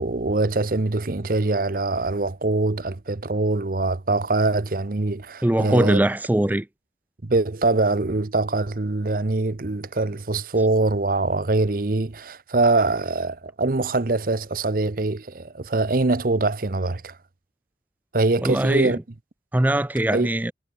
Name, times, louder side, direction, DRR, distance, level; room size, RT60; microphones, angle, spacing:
voice 1, 0.0-6.0 7.2-17.2 18.1-19.0 20.1-20.3, right 2 dB, 50° right, 0.8 m, -23 dB
voice 2, 5.4-6.7 18.4-19.0 19.5-20.5, right 1 dB, 10° right, 0.4 m, -21 dB
head